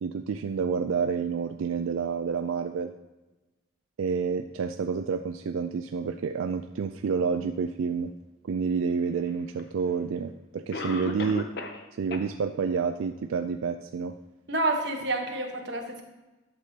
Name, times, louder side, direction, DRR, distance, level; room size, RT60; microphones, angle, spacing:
voice 1, 0.0-2.9 4.0-8.1 8.4-11.5 12.0-14.2, right 5 dB, 85° right, 6 dB, 0.4 m, -29 dB
Cough, 9.6-9.7 10.7-11.9 12.1-12.2 12.8-12.9 13.4-13.5, left 2 dB, 55° left, 0.7 m, -34 dB
voice 2, 14.5-16.0, right 2 dB, 55° right, 2 dB, 1.2 m, -28 dB
11.5 x 6.7 x 2.8 m, 1.1 s
head